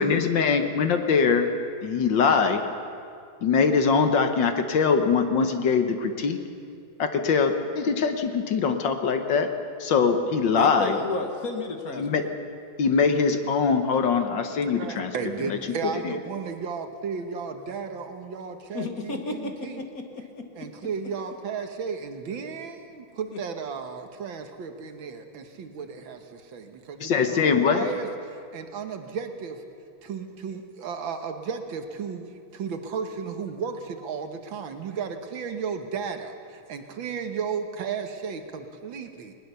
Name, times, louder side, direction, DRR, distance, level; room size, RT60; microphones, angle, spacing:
voice 1, 0.0-1.5 1.8-2.6 3.4-6.4 7.0-9.5 9.8-11.0 12.0-12.3 12.8-15.1 15.5-15.6 16.0-16.1 27.0-27.9, left 5 dB, 60° left, 7 dB, 1.7 m, -22 dB
voice 2, 10.6-12.3 18.7-20.7, left 3 dB, 45° left, 5 dB, 1.6 m, -32 dB
voice 3, 14.5-19.8 20.6-29.6 30.0-39.3, right 6 dB, 65° right, 7 dB, 1.9 m, -34 dB
20.0 x 19.5 x 6.9 m, 2.4 s
omnidirectional pair, 2.3 m